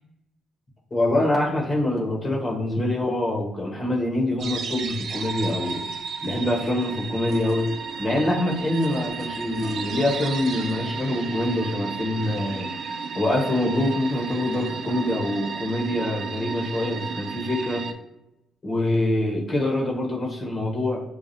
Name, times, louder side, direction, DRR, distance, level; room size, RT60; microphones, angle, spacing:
voice 1, 0.9-5.9 6.2-7.7 8.0-12.7 13.1-17.9 18.6-21.0, left 1 dB, 35° left, -1 dB, 1.2 m, -25 dB
sound 1, 4.4-17.9, right 5 dB, 65° right, 0.5 m, -33 dB
6.7 x 2.4 x 2.7 m, 0.91 s
cardioid pair, 90°, 0 cm